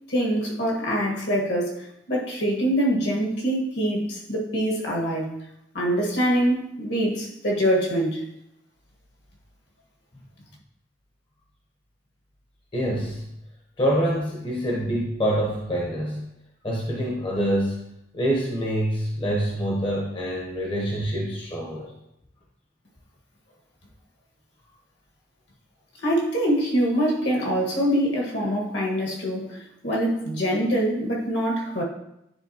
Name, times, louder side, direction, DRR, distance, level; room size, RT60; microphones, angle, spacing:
voice 1, 0.1-5.3 5.7-8.2 26.0-31.8, equal, 65° left, -2 dB, 1.5 m, -24 dB
voice 2, 12.7-13.2 13.8-16.2 16.6-17.9 18.1-21.9, equal, 25° left, -3 dB, 0.8 m, -26 dB
9.7 x 4.0 x 2.8 m, 0.82 s
head